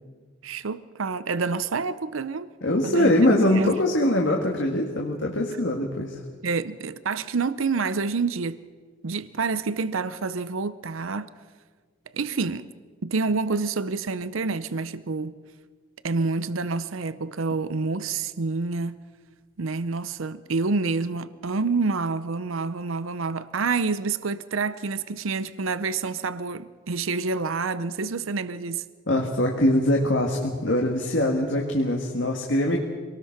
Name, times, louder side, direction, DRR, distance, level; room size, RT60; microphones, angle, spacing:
voice 1, 0.4-2.5 2.8-3.1 3.5-3.7 6.4-8.6 9.0-11.3 12.1-12.7 13.0-15.3 16.0-19.0 19.6-28.8, right 4 dB, 85° right, 0.7 m, -28 dB
voice 2, 2.6-6.2 29.1-32.8, left 1 dB, 65° left, 1.9 m, -22 dB
25.5 x 19.0 x 6.0 m
head